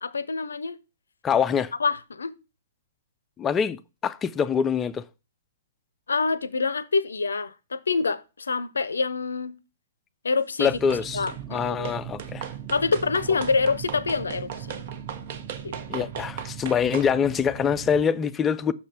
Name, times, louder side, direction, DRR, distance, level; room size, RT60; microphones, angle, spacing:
voice 1, 0.0-0.8 1.8-2.3 6.1-9.6 10.2-10.7 11.1-11.9 12.7-14.8 15.6-16.1, left 4 dB, 70° left, 0.6 m, -26 dB
voice 2, 1.2-1.7 3.4-5.0 10.6-11.2 11.5-12.5 15.9-18.7, left 7 dB, 15° left, 0.4 m, -24 dB
sound 1, 10.6-18.0, right 9 dB, 25° right, 1.1 m, -39 dB
sound 2, 10.9-11.4 11.8-17.1, right 8 dB, 45° right, 0.8 m, -38 dB
6.5 x 5.3 x 4.9 m
figure-of-eight pair, 115°, 0 cm